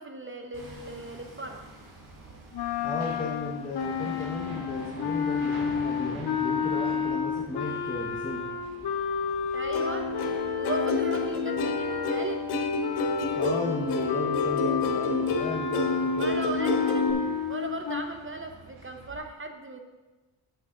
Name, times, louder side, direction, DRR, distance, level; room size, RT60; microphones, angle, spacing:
voice 1, 0.0-1.7 9.5-10.1 10.5-12.4 16.2-19.8, right 2 dB, 25° right, 5 dB, 0.9 m, -37 dB
Hammer, 0.5-19.2, right 2 dB, 70° right, 2.6 m, -47 dB
sound 1, 2.5-12.4 12.8-18.0, left 7 dB, 55° left, 0.8 m, -31 dB
voice 2, 2.8-8.5 13.3-16.5, left 2 dB, 15° left, -2 dB, 1.1 m, -35 dB
Plucked string instrument, 9.7-17.1, left 3 dB, 80° left, 1.1 m, -28 dB
7.9 x 6.9 x 3.8 m, 1.2 s
cardioid pair, 70°, 49 cm